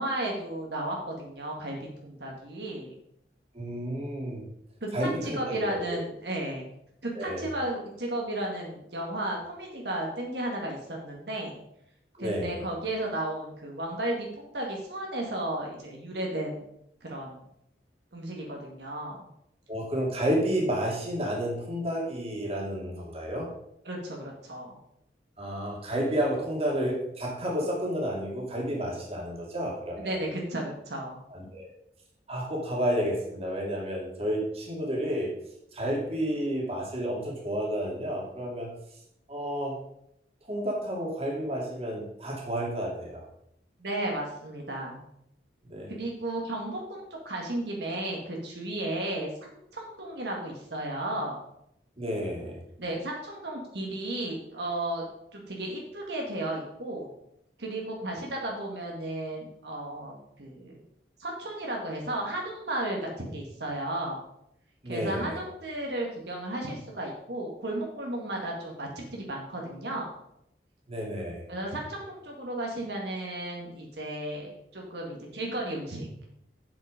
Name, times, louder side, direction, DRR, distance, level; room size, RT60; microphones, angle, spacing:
voice 1, 0.0-3.0 4.8-6.6 7.0-11.6 12.2-16.6 17.0-17.4 18.1-19.2 23.8-24.8 30.0-31.2 43.8-45.0 45.9-51.4 52.8-55.0 55.3-57.1 57.6-60.8 61.2-64.2 64.9-70.1 71.5-76.1, right 1 dB, 70° right, -1 dB, 2.0 m, -34 dB
voice 2, 3.5-4.4 4.9-6.0 7.1-7.5 12.2-12.6 19.7-23.5 25.4-30.1 31.3-31.7 32.3-35.3 35.7-38.7 39.3-39.7 40.4-43.2 45.7-46.0 52.0-52.6 64.8-65.4 70.9-71.4, equal, 35° right, -1 dB, 2.5 m, -31 dB
8.2 x 7.8 x 5.1 m, 0.76 s
head